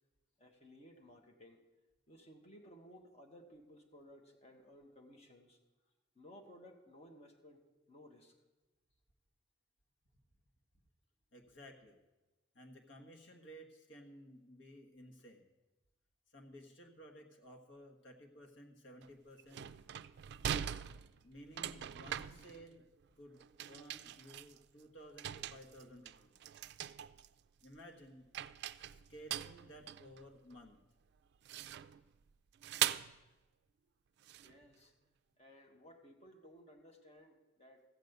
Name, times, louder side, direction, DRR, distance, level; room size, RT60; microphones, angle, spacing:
voice 1, 0.4-1.6 2.1-5.6 6.1-8.4 34.3-34.9 35.4-37.8, equal, 35° left, 2 dB, 1.4 m, -58 dB
voice 2, 11.3-12.0 12.5-15.5 16.3-19.7 21.2-22.8 23.2-26.6 27.6-28.3 28.8-30.8, equal, 80° left, 2 dB, 1.5 m, -56 dB
sound 1, 19.0-19.1 19.4-23.0 23.4-24.8 25.2-27.3 27.6-28.1 28.3-30.7 31.4-32.0 32.6-33.2 34.2-34.5, right 10 dB, 60° right, 0.3 m, -42 dB
14.5 x 5.3 x 8.0 m, 1.1 s
head